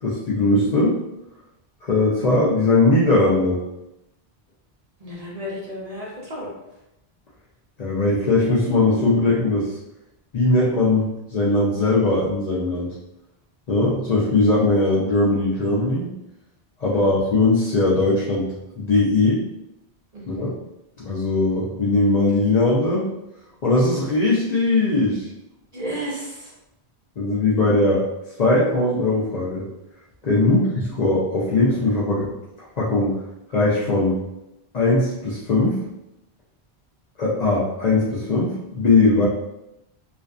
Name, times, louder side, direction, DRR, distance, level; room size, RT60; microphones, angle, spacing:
voice 1, 0.0-1.0 1.8-3.6 7.8-9.7 10.3-12.9 13.7-16.1 16.8-18.5 18.8-19.4 20.3-20.5 21.0-23.1 23.6-25.3 27.2-28.0 28.4-29.6 30.2-32.3 32.8-33.2 33.5-34.2 34.7-35.8 37.2-39.3, left 2 dB, 50° left, -6 dB, 0.5 m, -20 dB
voice 2, 5.0-6.5 16.9-17.1 20.1-20.5 25.7-26.5 27.5-27.6 28.5-28.7 30.3-30.7, equal, 45° right, -5 dB, 0.7 m, -34 dB
2.4 x 2.4 x 2.3 m, 0.89 s
omnidirectional pair, 1.0 m